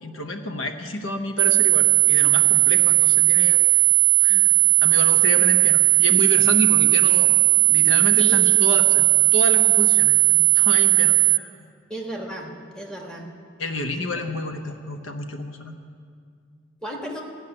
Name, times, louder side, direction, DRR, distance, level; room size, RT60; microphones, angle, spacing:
voice 1, 0.0-3.7 4.2-4.5 4.8-7.3 7.7-11.5 13.6-15.7, left 2 dB, 75° left, 6 dB, 0.9 m, -30 dB
sound 1, 1.4-11.4, right 20 dB, 70° right, 0.3 m, -17 dB
voice 2, 8.2-8.6 11.9-12.5 12.7-13.3 16.8-17.2, right 1 dB, 5° left, -1 dB, 1.3 m, -34 dB
15.5 x 5.6 x 9.8 m, 2.2 s
head